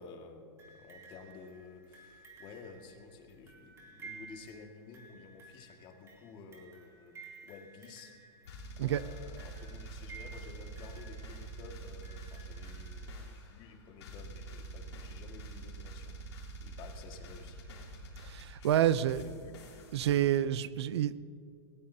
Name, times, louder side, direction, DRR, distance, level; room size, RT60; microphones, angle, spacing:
voice 1, 0.0-8.1 8.8-16.2 16.6-17.6 18.6-19.6, left 4 dB, 35° left, 3 dB, 1.8 m, -52 dB
sound 1, 0.6-13.4 14.4-14.5, right 4 dB, 20° right, 2.8 m, -55 dB
sound 2, 8.4-13.7 14.0-20.4, right 2 dB, 80° left, 3.5 m, -46 dB
voice 2, 18.2-19.2 19.9-21.2, right 11 dB, 75° right, 17 dB, 0.5 m, -28 dB
19.0 x 18.5 x 2.8 m, 2.3 s
hypercardioid pair, 130°, 14 cm